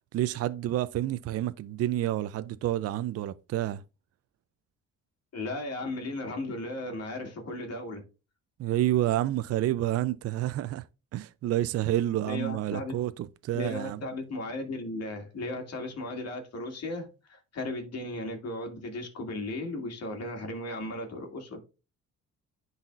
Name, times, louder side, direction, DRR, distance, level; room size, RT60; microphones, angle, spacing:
voice 1, 0.1-3.8 8.6-10.8 11.1-14.0, right 13 dB, 55° right, 0.4 m, -29 dB
voice 2, 5.3-8.0 12.2-12.9 13.5-21.6, left 2 dB, 55° left, 2.2 m, -36 dB
10.5 x 4.1 x 2.4 m
cardioid pair, 90°, 30 cm